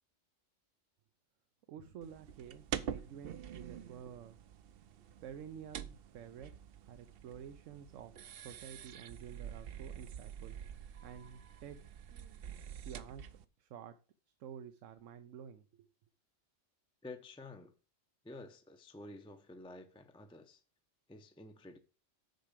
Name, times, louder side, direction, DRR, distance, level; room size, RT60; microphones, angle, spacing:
voice 1, 1.7-4.4 5.2-6.5 6.8-12.4 12.8-13.2 13.6-14.0 14.4-15.9, right 8 dB, 85° right, 1.0 m, -50 dB
sound 1, 2.0-13.4, right 9 dB, 60° right, 0.7 m, -47 dB
voice 2, 17.0-17.7 18.2-20.6 21.1-21.8, left 2 dB, 5° left, 0.5 m, -51 dB
6.6 x 4.7 x 6.6 m
omnidirectional pair, 1.3 m